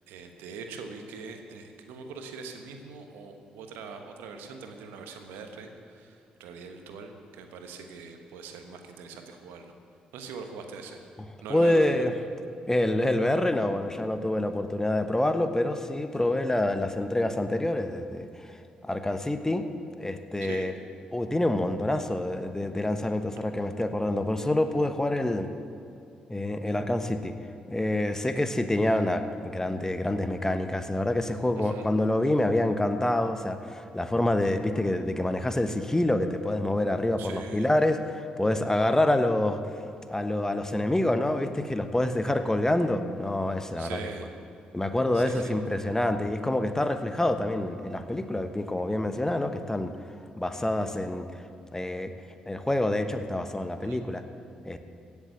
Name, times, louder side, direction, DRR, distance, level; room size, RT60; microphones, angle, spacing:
voice 1, 0.1-9.7 10.1-11.0 11.4-12.1 16.2-16.3 20.4-20.7 28.3-28.5 31.6-31.9 37.2-37.7 38.9-39.0 43.8-44.3 45.1-45.4 53.8-54.0, right 5 dB, 75° right, 5 dB, 1.3 m, -42 dB
voice 2, 11.5-12.1 12.7-19.6 20.0-20.7 21.1-25.5 26.3-27.3 27.7-39.7 40.1-44.0 44.7-49.9 50.4-51.3 51.7-52.1 52.5-54.2 54.6-54.8, left 1 dB, 15° left, 8 dB, 1.1 m, -27 dB
16.0 x 7.1 x 8.3 m, 2.6 s
hypercardioid pair, 45°, 4 cm